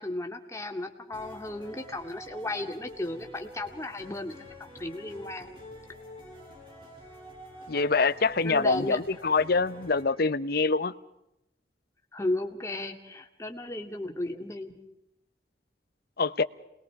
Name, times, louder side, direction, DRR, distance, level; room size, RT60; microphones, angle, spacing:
voice 1, 0.0-5.5 8.4-9.0 12.1-14.7, left 2 dB, 15° left, 3 dB, 2.3 m, -35 dB
sound 1, 1.1-10.0, equal, 30° right, 5.8 m, -47 dB
voice 2, 7.7-10.9 16.2-16.4, left 4 dB, 60° left, 14 dB, 0.9 m, -25 dB
28.5 x 21.0 x 4.8 m, 0.86 s
head